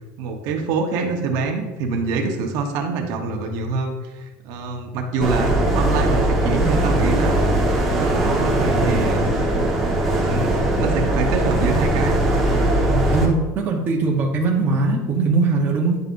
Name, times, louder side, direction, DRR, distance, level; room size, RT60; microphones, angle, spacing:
voice 1, 0.2-7.4 8.0-9.3 10.2-12.2, right 4 dB, 50° right, 3 dB, 0.9 m, -25 dB
sound 1, 5.2-13.3, right 1 dB, ahead, 1.1 m, -20 dB
voice 2, 12.9-16.0, right 3 dB, 25° right, -2 dB, 0.9 m, -21 dB
10.5 x 5.3 x 2.5 m, 1.1 s
cardioid pair, 180°, 8 cm